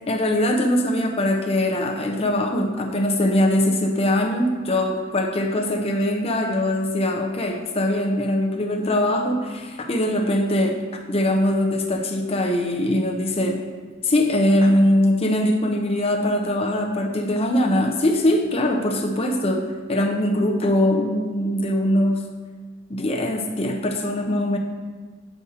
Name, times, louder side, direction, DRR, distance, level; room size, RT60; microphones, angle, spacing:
voice 1, 0.1-10.8 11.1-13.6 14.0-22.2 22.9-24.6, left 1 dB, 30° left, 2 dB, 0.6 m, -22 dB
8.0 x 2.8 x 4.8 m, 1.5 s
head